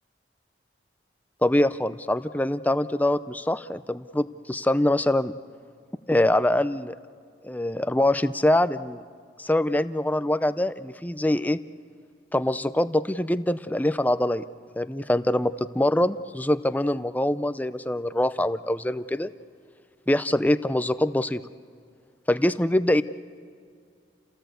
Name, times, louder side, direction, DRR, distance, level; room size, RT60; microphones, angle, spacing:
voice 1, 1.4-5.3 6.1-7.0 7.4-9.0 9.4-11.6 12.3-14.4 14.8-19.3 20.1-21.4 22.3-23.0, left 1 dB, 10° left, 13 dB, 0.5 m, -24 dB
29.5 x 18.0 x 8.1 m, 2.3 s
head